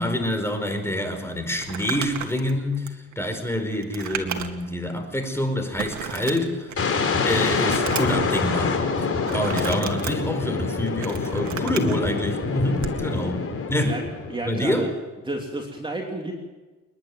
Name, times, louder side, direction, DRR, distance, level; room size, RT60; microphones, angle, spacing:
voice 1, 0.0-6.7 7.2-14.0 14.4-14.9, left 1 dB, 10° left, 6 dB, 4.7 m, -26 dB
Crumpling crinkling, 1.6-4.7 5.1-5.2 5.8-6.9 7.3-8.3 9.2-10.1 10.7-12.0 12.7-13.0, right 8 dB, 70° right, 2.2 m, -34 dB
sound 1, 6.8-14.6, left 4 dB, 50° left, 4.5 m, -26 dB
voice 2, 14.3-14.9 15.2-16.3, right 2 dB, 15° right, 0 dB, 3.1 m, -30 dB
29.5 x 10.5 x 9.5 m, 1.2 s
cardioid pair, 90°, 30 cm